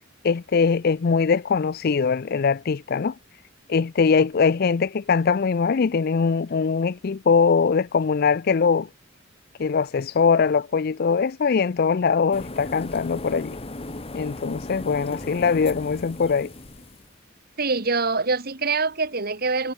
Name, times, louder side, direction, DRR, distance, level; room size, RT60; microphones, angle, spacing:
voice 1, 0.2-3.1 3.7-8.9 9.6-13.6 14.1-16.5, left 5 dB, 50° left, 0.4 m, -22 dB
sound 1, 12.3-17.1, left 2 dB, 30° left, 1.4 m, -36 dB
voice 2, 17.6-19.7, right 4 dB, 50° right, 2.2 m, -24 dB
head